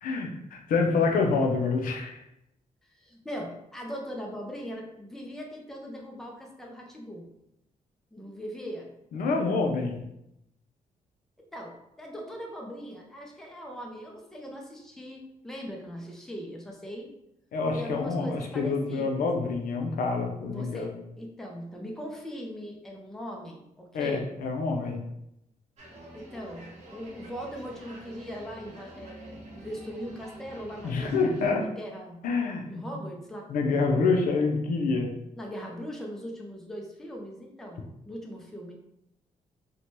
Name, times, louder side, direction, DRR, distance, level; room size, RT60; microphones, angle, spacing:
voice 1, 0.0-2.2 9.1-10.0 17.5-20.9 23.9-25.0 30.8-31.6 32.2-32.6 33.5-35.1, left 4 dB, 80° left, 2 dB, 0.5 m, -27 dB
voice 2, 2.9-7.3 8.1-8.9 11.5-17.1 17.8-19.3 20.5-24.3 26.1-31.3 31.5-32.2 32.7-33.9 35.3-38.7, equal, 5° left, 0 dB, 0.4 m, -40 dB
sound 1, 25.8-31.5, right 1 dB, 55° right, 0.9 m, -47 dB
2.7 x 2.2 x 3.0 m, 0.82 s
cardioid pair, 140°, 14 cm